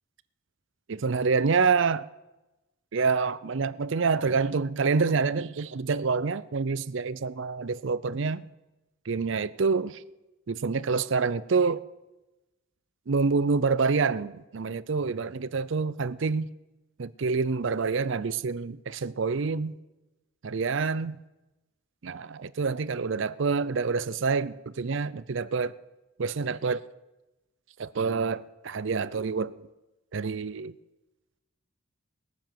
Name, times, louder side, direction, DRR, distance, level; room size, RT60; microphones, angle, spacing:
voice 1, 0.9-2.0 2.9-8.5 9.1-10.0 10.5-11.8 13.1-16.5 17.0-19.7 20.4-21.2 22.0-25.7 26.2-26.8 27.8-29.7 30.1-30.7, right 4 dB, 60° right, 0.5 m, -27 dB
20.0 x 7.1 x 7.6 m
head